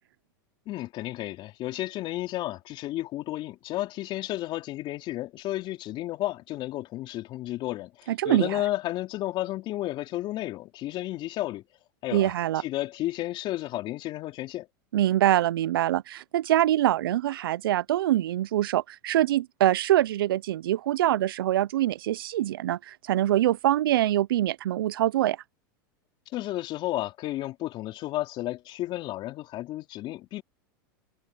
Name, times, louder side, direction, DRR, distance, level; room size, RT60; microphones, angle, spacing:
voice 1, 0.7-11.6 12.0-14.7 26.3-30.4, left 15 dB, 45° left, 3.6 m, -32 dB
voice 2, 8.2-8.6 12.1-12.6 14.9-25.4, right 13 dB, 85° right, 0.6 m, -24 dB
hypercardioid pair, 110°, 12 cm